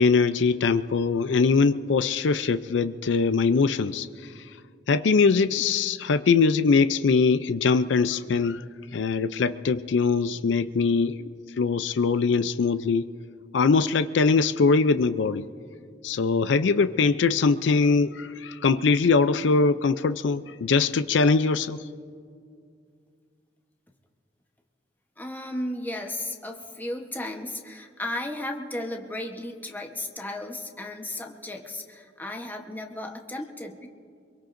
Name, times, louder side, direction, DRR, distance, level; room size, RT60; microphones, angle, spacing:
voice 1, 0.0-4.5 4.9-8.6 8.9-11.3 11.6-13.1 13.5-15.4 16.0-21.8, left 4 dB, 85° left, 12 dB, 0.4 m, -22 dB
voice 2, 25.2-33.9, left 1 dB, 10° left, 2 dB, 1.0 m, -34 dB
23.5 x 23.0 x 2.6 m, 2.2 s
head